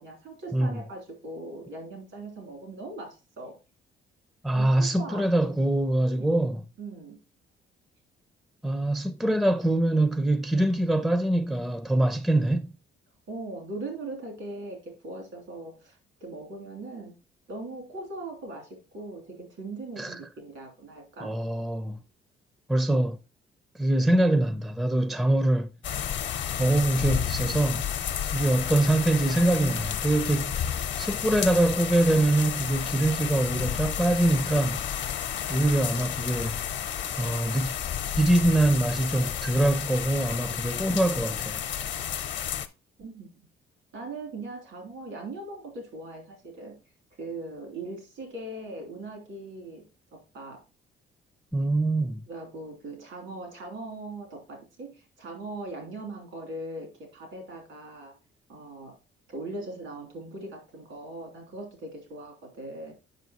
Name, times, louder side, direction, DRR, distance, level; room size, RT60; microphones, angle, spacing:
voice 1, 0.0-3.6 4.5-5.5 6.0-6.4 6.8-7.2 13.3-17.2 17.5-21.3 43.0-43.3 43.9-46.7 47.2-49.8 50.1-50.6 52.3-58.2 58.5-59.0 59.3-62.9, right 2 dB, 75° right, 3.0 m, -40 dB
voice 2, 4.4-6.6 8.6-12.7 20.0-20.2 21.2-22.0 22.7-23.2 23.8-25.7 26.6-27.9 28.3-30.7 31.0-34.9 35.5-36.6 37.2-37.8 38.2-41.6 51.5-52.2, right 1 dB, ahead, 0.5 m, -24 dB
sound 1, 25.8-42.7, left 9 dB, 65° left, 0.9 m, -31 dB
8.2 x 5.8 x 2.9 m
cardioid pair, 90°, 20 cm